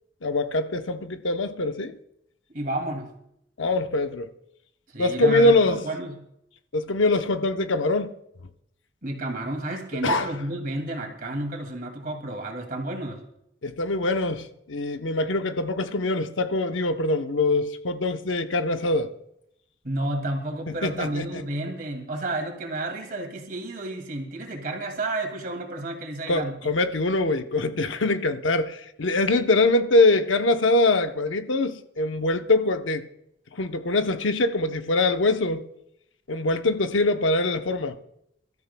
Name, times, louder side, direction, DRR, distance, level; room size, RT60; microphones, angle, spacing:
voice 1, 0.2-2.0 3.6-4.3 5.0-5.8 6.7-8.1 10.0-10.3 13.6-19.1 20.7-21.4 26.3-33.0 33.5-35.6 36.3-38.0, left 2 dB, 90° left, 0.8 m, -23 dB
voice 2, 2.5-3.1 4.9-6.2 9.0-13.2 19.8-26.6, right 2 dB, 50° right, 2.4 m, -31 dB
27.0 x 13.0 x 2.2 m
head